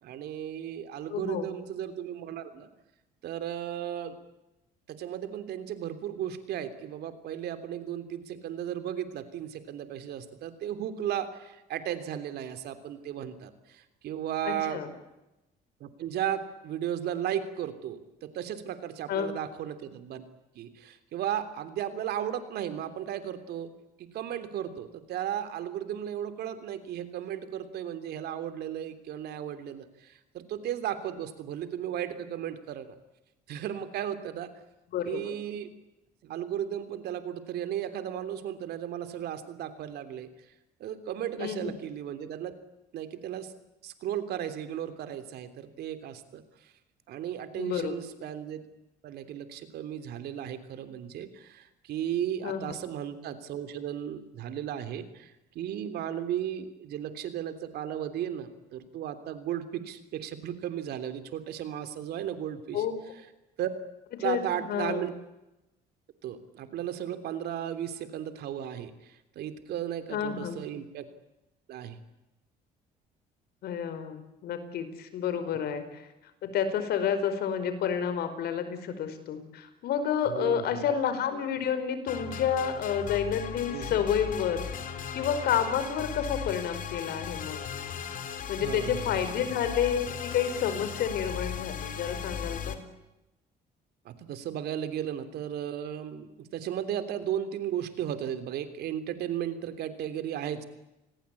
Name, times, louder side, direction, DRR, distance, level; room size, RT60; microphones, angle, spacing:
voice 1, 0.0-2.7 3.2-4.2 4.9-14.8 15.8-20.3 20.5-23.7 24.0-32.9 33.5-34.5 35.0-35.7 36.2-40.3 40.8-42.5 42.9-43.5 43.8-46.7 47.1-48.6 49.0-62.8 63.6-63.7 64.2-65.1 66.2-71.0 71.7-72.0 80.2-80.9 83.7-84.0 88.6-89.4 94.0-100.6, right 10 dB, 70° right, 10 dB, 3.3 m, -35 dB
voice 2, 1.1-1.4 14.4-14.9 19.1-19.3 34.9-35.4 41.4-41.7 47.5-47.9 52.4-52.7 62.7-63.0 64.2-65.1 70.1-70.6 73.6-76.0 76.4-84.7 85.1-87.6 88.5-92.8, left 8 dB, 70° left, 11 dB, 5.1 m, -30 dB
sound 1, 82.1-92.8, left 7 dB, 55° left, 3.5 m, -37 dB
29.5 x 21.0 x 8.6 m, 0.96 s
cardioid pair, 110°, 17 cm